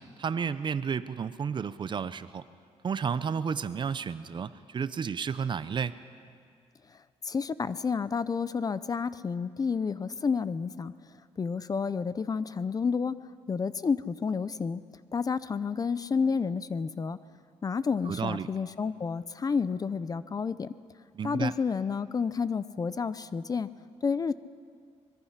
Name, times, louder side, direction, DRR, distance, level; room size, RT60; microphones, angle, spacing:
voice 1, 0.0-2.4 2.8-6.0 18.1-18.5 21.1-21.5, right 6 dB, 40° right, 14 dB, 0.7 m, -32 dB
voice 2, 7.2-10.9 11.4-13.2 13.5-14.8 15.1-17.2 17.6-20.7 21.2-23.7 24.0-24.3, left 5 dB, 30° left, 15 dB, 0.6 m, -30 dB
24.5 x 21.5 x 5.8 m, 2.2 s
cardioid pair, 115°, 12 cm